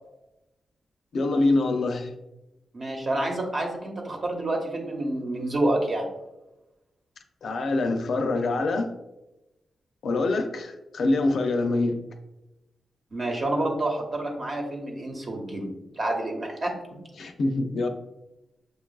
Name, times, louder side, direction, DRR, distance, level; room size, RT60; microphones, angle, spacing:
voice 1, 1.1-2.1 7.4-8.9 10.0-12.0 17.2-17.9, left 2 dB, 75° left, 5 dB, 0.5 m, -25 dB
voice 2, 2.7-6.1 13.1-16.7, right 1 dB, 45° right, 1 dB, 0.9 m, -28 dB
6.5 x 2.4 x 2.3 m, 0.97 s
wide cardioid pair, 110°, 0 cm